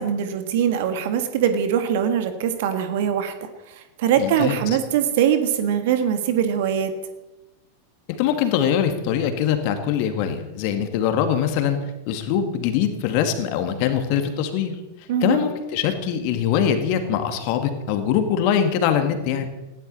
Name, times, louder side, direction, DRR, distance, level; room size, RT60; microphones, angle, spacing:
voice 1, 0.0-3.3 4.0-6.9 15.1-15.5, right 8 dB, 50° right, 9 dB, 1.7 m, -22 dB
voice 2, 4.2-4.6 8.1-11.8 12.1-14.8 15.2-19.5, left 8 dB, 45° left, 7 dB, 2.2 m, -22 dB
19.5 x 16.0 x 4.2 m, 1.1 s
figure-of-eight pair, 90°, 0 cm